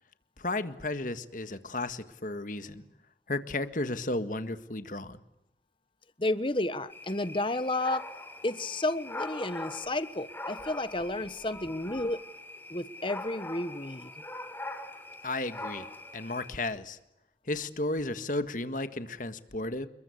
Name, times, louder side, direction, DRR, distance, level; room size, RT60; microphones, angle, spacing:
voice 1, 0.4-2.8 3.3-5.2 15.2-17.0 17.4-19.9, left 2 dB, 45° left, 11 dB, 1.7 m, -34 dB
voice 2, 6.2-8.0 8.4-12.2 12.7-14.1, left 2 dB, 30° left, 14 dB, 1.1 m, -31 dB
sound 1, 6.9-16.5, left 2 dB, 10° left, 3.4 m, -42 dB
29.0 x 22.0 x 8.5 m, 0.85 s
head